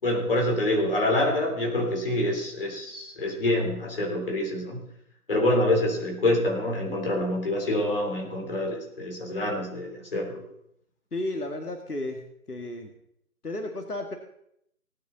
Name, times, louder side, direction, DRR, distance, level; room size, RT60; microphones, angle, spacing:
voice 1, 0.0-4.8 5.3-10.4, left 1 dB, 35° left, 0 dB, 3.9 m, -26 dB
voice 2, 11.1-12.9 13.4-14.2, left 1 dB, 80° left, 4 dB, 2.0 m, -33 dB
19.0 x 9.5 x 4.1 m, 0.74 s
figure-of-eight pair, 165°, 46 cm